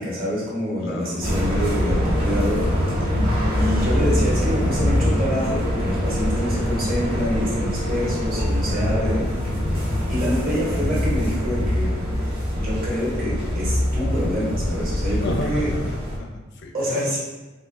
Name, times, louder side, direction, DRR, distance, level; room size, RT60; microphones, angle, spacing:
voice 1, 0.0-2.7 3.6-9.3 10.1-11.9 12.5-15.7 16.7-17.2, equal, 45° right, -6 dB, 1.2 m, -26 dB
voice 2, 0.8-1.2 15.2-17.2, left 1 dB, 60° left, 3 dB, 0.4 m, -32 dB
sound 1, 1.2-16.2, equal, 30° right, 1.2 m, -23 dB
3.8 x 2.7 x 2.6 m, 1.2 s
head